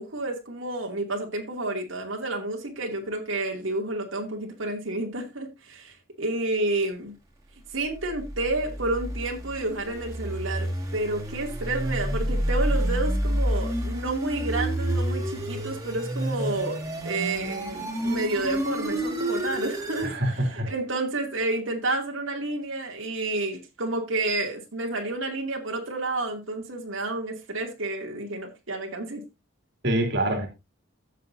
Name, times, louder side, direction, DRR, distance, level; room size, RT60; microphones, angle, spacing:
voice 1, 0.0-7.1 7.7-29.2, right 2 dB, 85° right, 0 dB, 2.5 m, -30 dB
sound 1, 7.9-20.1, right 1 dB, 20° right, 2.6 m, -29 dB
voice 2, 20.0-20.7 29.8-30.5, right 1 dB, 60° right, 3 dB, 2.6 m, -25 dB
15.0 x 6.7 x 2.6 m, 0.25 s
head